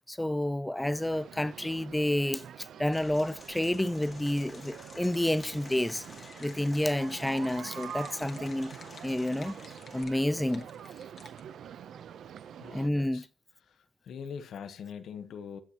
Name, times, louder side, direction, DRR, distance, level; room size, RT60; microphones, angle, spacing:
voice 1, 0.1-2.4 2.8-6.0 6.4-8.7 9.0-9.6 9.9-10.7 12.7-13.2, left 1 dB, 5° left, 0.5 m, -29 dB
sound 1, 0.8-12.9, right 9 dB, 65° right, 0.7 m, -46 dB
Applause / Crowd, 2.9-10.0, left 3 dB, 25° left, 2.7 m, -51 dB
sound 2, 4.8-11.4, left 5 dB, 45° left, 2.0 m, -55 dB
voice 2, 12.6-13.3 14.0-15.6, left 7 dB, 65° left, 1.1 m, -42 dB
21.5 x 8.2 x 3.0 m
cardioid pair, 90°, 0 cm